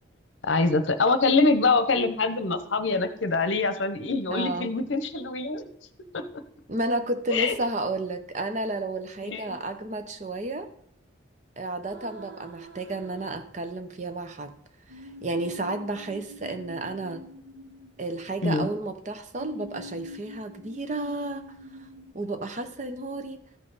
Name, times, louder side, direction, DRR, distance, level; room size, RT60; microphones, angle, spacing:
voice 1, 0.4-5.7 6.1-6.2 7.3-7.6 9.2-9.6 18.4-18.7, left 3 dB, 70° left, 10 dB, 0.8 m, -24 dB
voice 2, 4.3-4.7 6.7-10.7 11.6-14.6 15.0-17.2 18.0-21.4 22.1-23.4, right 2 dB, 35° right, 8 dB, 0.7 m, -32 dB
sound 1, 11.9-14.1 14.9-18.6 19.4-22.1, right 1 dB, 70° right, 1.2 m, -45 dB
13.5 x 5.6 x 4.0 m, 0.67 s
head